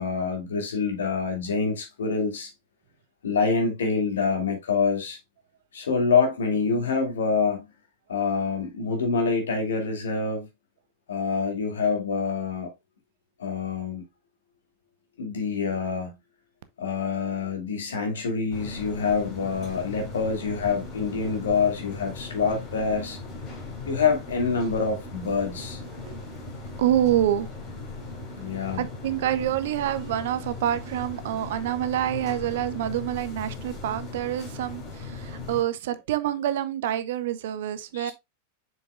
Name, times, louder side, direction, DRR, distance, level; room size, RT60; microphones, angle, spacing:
voice 1, 0.0-2.5 3.2-5.2 5.7-7.7 8.1-10.5 11.1-12.7 13.4-14.0 15.2-16.2 16.8-23.2 23.9-25.8 28.3-28.9 37.9-38.1, left 5 dB, 65° left, 2.4 m, -26 dB
sound 1, 18.5-35.6, left 3 dB, 35° left, 3.9 m, -38 dB
voice 2, 26.8-27.5 28.5-38.1, right 12 dB, 55° right, 0.7 m, -27 dB
7.6 x 6.1 x 2.4 m
figure-of-eight pair, 90°, 0 cm